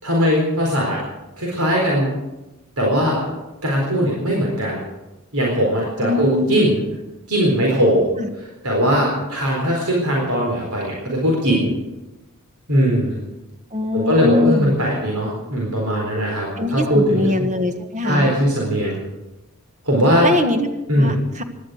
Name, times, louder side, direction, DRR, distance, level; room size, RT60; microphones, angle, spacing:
voice 1, 0.0-1.0 1.4-2.1 2.8-3.2 3.6-4.8 5.3-6.8 7.3-8.1 8.4-11.7 12.7-13.2 13.9-17.5 18.0-19.0 19.9-20.3 20.9-21.2, equal, 85° right, -2 dB, 4.1 m, -19 dB
voice 2, 6.0-6.7 8.2-8.3 13.7-14.7 16.6-18.3 20.2-20.7 21.0-21.4, left 2 dB, 35° right, 7 dB, 1.5 m, -22 dB
17.0 x 12.0 x 6.5 m, 1.0 s
head